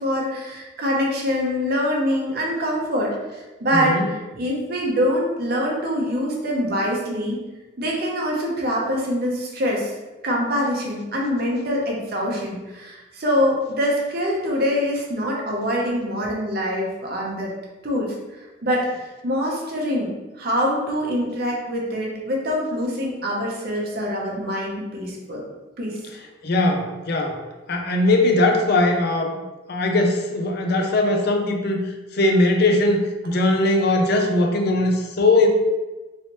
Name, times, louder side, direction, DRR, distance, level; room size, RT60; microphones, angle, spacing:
voice 1, 0.0-3.2 3.6-4.0 4.4-7.4 7.8-9.9 10.2-17.5 17.8-18.9 19.2-25.4 25.8-26.0, equal, 55° right, -2 dB, 0.7 m, -24 dB
voice 2, 3.7-4.1 26.4-27.4 27.7-29.4 29.7-31.8 32.1-35.5, left 2 dB, 55° left, 3 dB, 0.5 m, -20 dB
3.1 x 2.9 x 2.9 m, 1.1 s
head